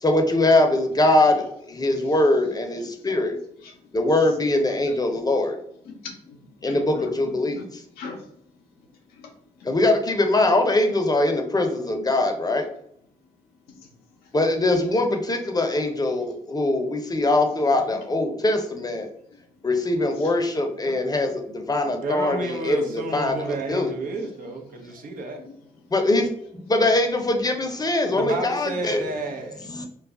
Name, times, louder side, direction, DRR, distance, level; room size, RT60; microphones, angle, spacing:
voice 1, 0.0-3.4 3.9-5.6 6.6-7.8 9.6-12.7 14.3-19.1 19.6-23.9 25.9-29.0 29.7-29.8, left 2 dB, 25° left, 4 dB, 0.6 m, -22 dB
voice 2, 3.6-3.9 4.9-5.0 5.9-7.1 7.5-7.6 8.0-8.3 8.8-9.3 9.6-9.7 13.7-13.9 14.2-14.3 17.7-17.9 20.2-20.3 20.9-21.0 24.2-24.5 24.9-25.5 28.0-28.2, left 4 dB, 85° left, 2 dB, 0.6 m, -42 dB
voice 3, 21.9-25.4 28.1-29.8, right 3 dB, 65° right, 2 dB, 0.7 m, -31 dB
2.3 x 2.0 x 3.6 m, 0.68 s
supercardioid pair, 50°, 15 cm